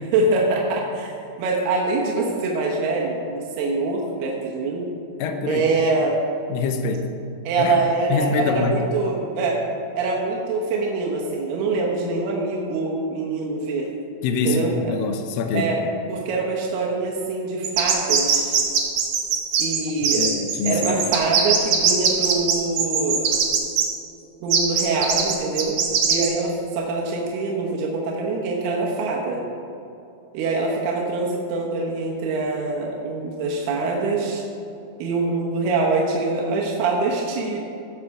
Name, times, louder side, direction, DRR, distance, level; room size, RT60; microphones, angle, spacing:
voice 1, 0.1-4.9 5.5-6.2 7.5-9.6 10.0-13.9 14.4-14.9 15.5-15.8 16.1-18.6 19.6-20.3 20.6-23.3 24.4-25.8 26.1-29.4 30.3-34.4 35.0-37.6, right 3 dB, 85° right, -2 dB, 3.2 m, -24 dB
voice 2, 5.2-5.7 6.5-7.1 7.6-7.8 8.1-8.8 14.2-15.7 20.2-21.0, left 4 dB, 75° left, 6 dB, 2.3 m, -25 dB
sound 1, 17.6-23.8 24.5-26.3, right 7 dB, 70° right, 2.9 m, -20 dB
16.0 x 5.8 x 4.8 m, 2.8 s
omnidirectional pair, 4.5 m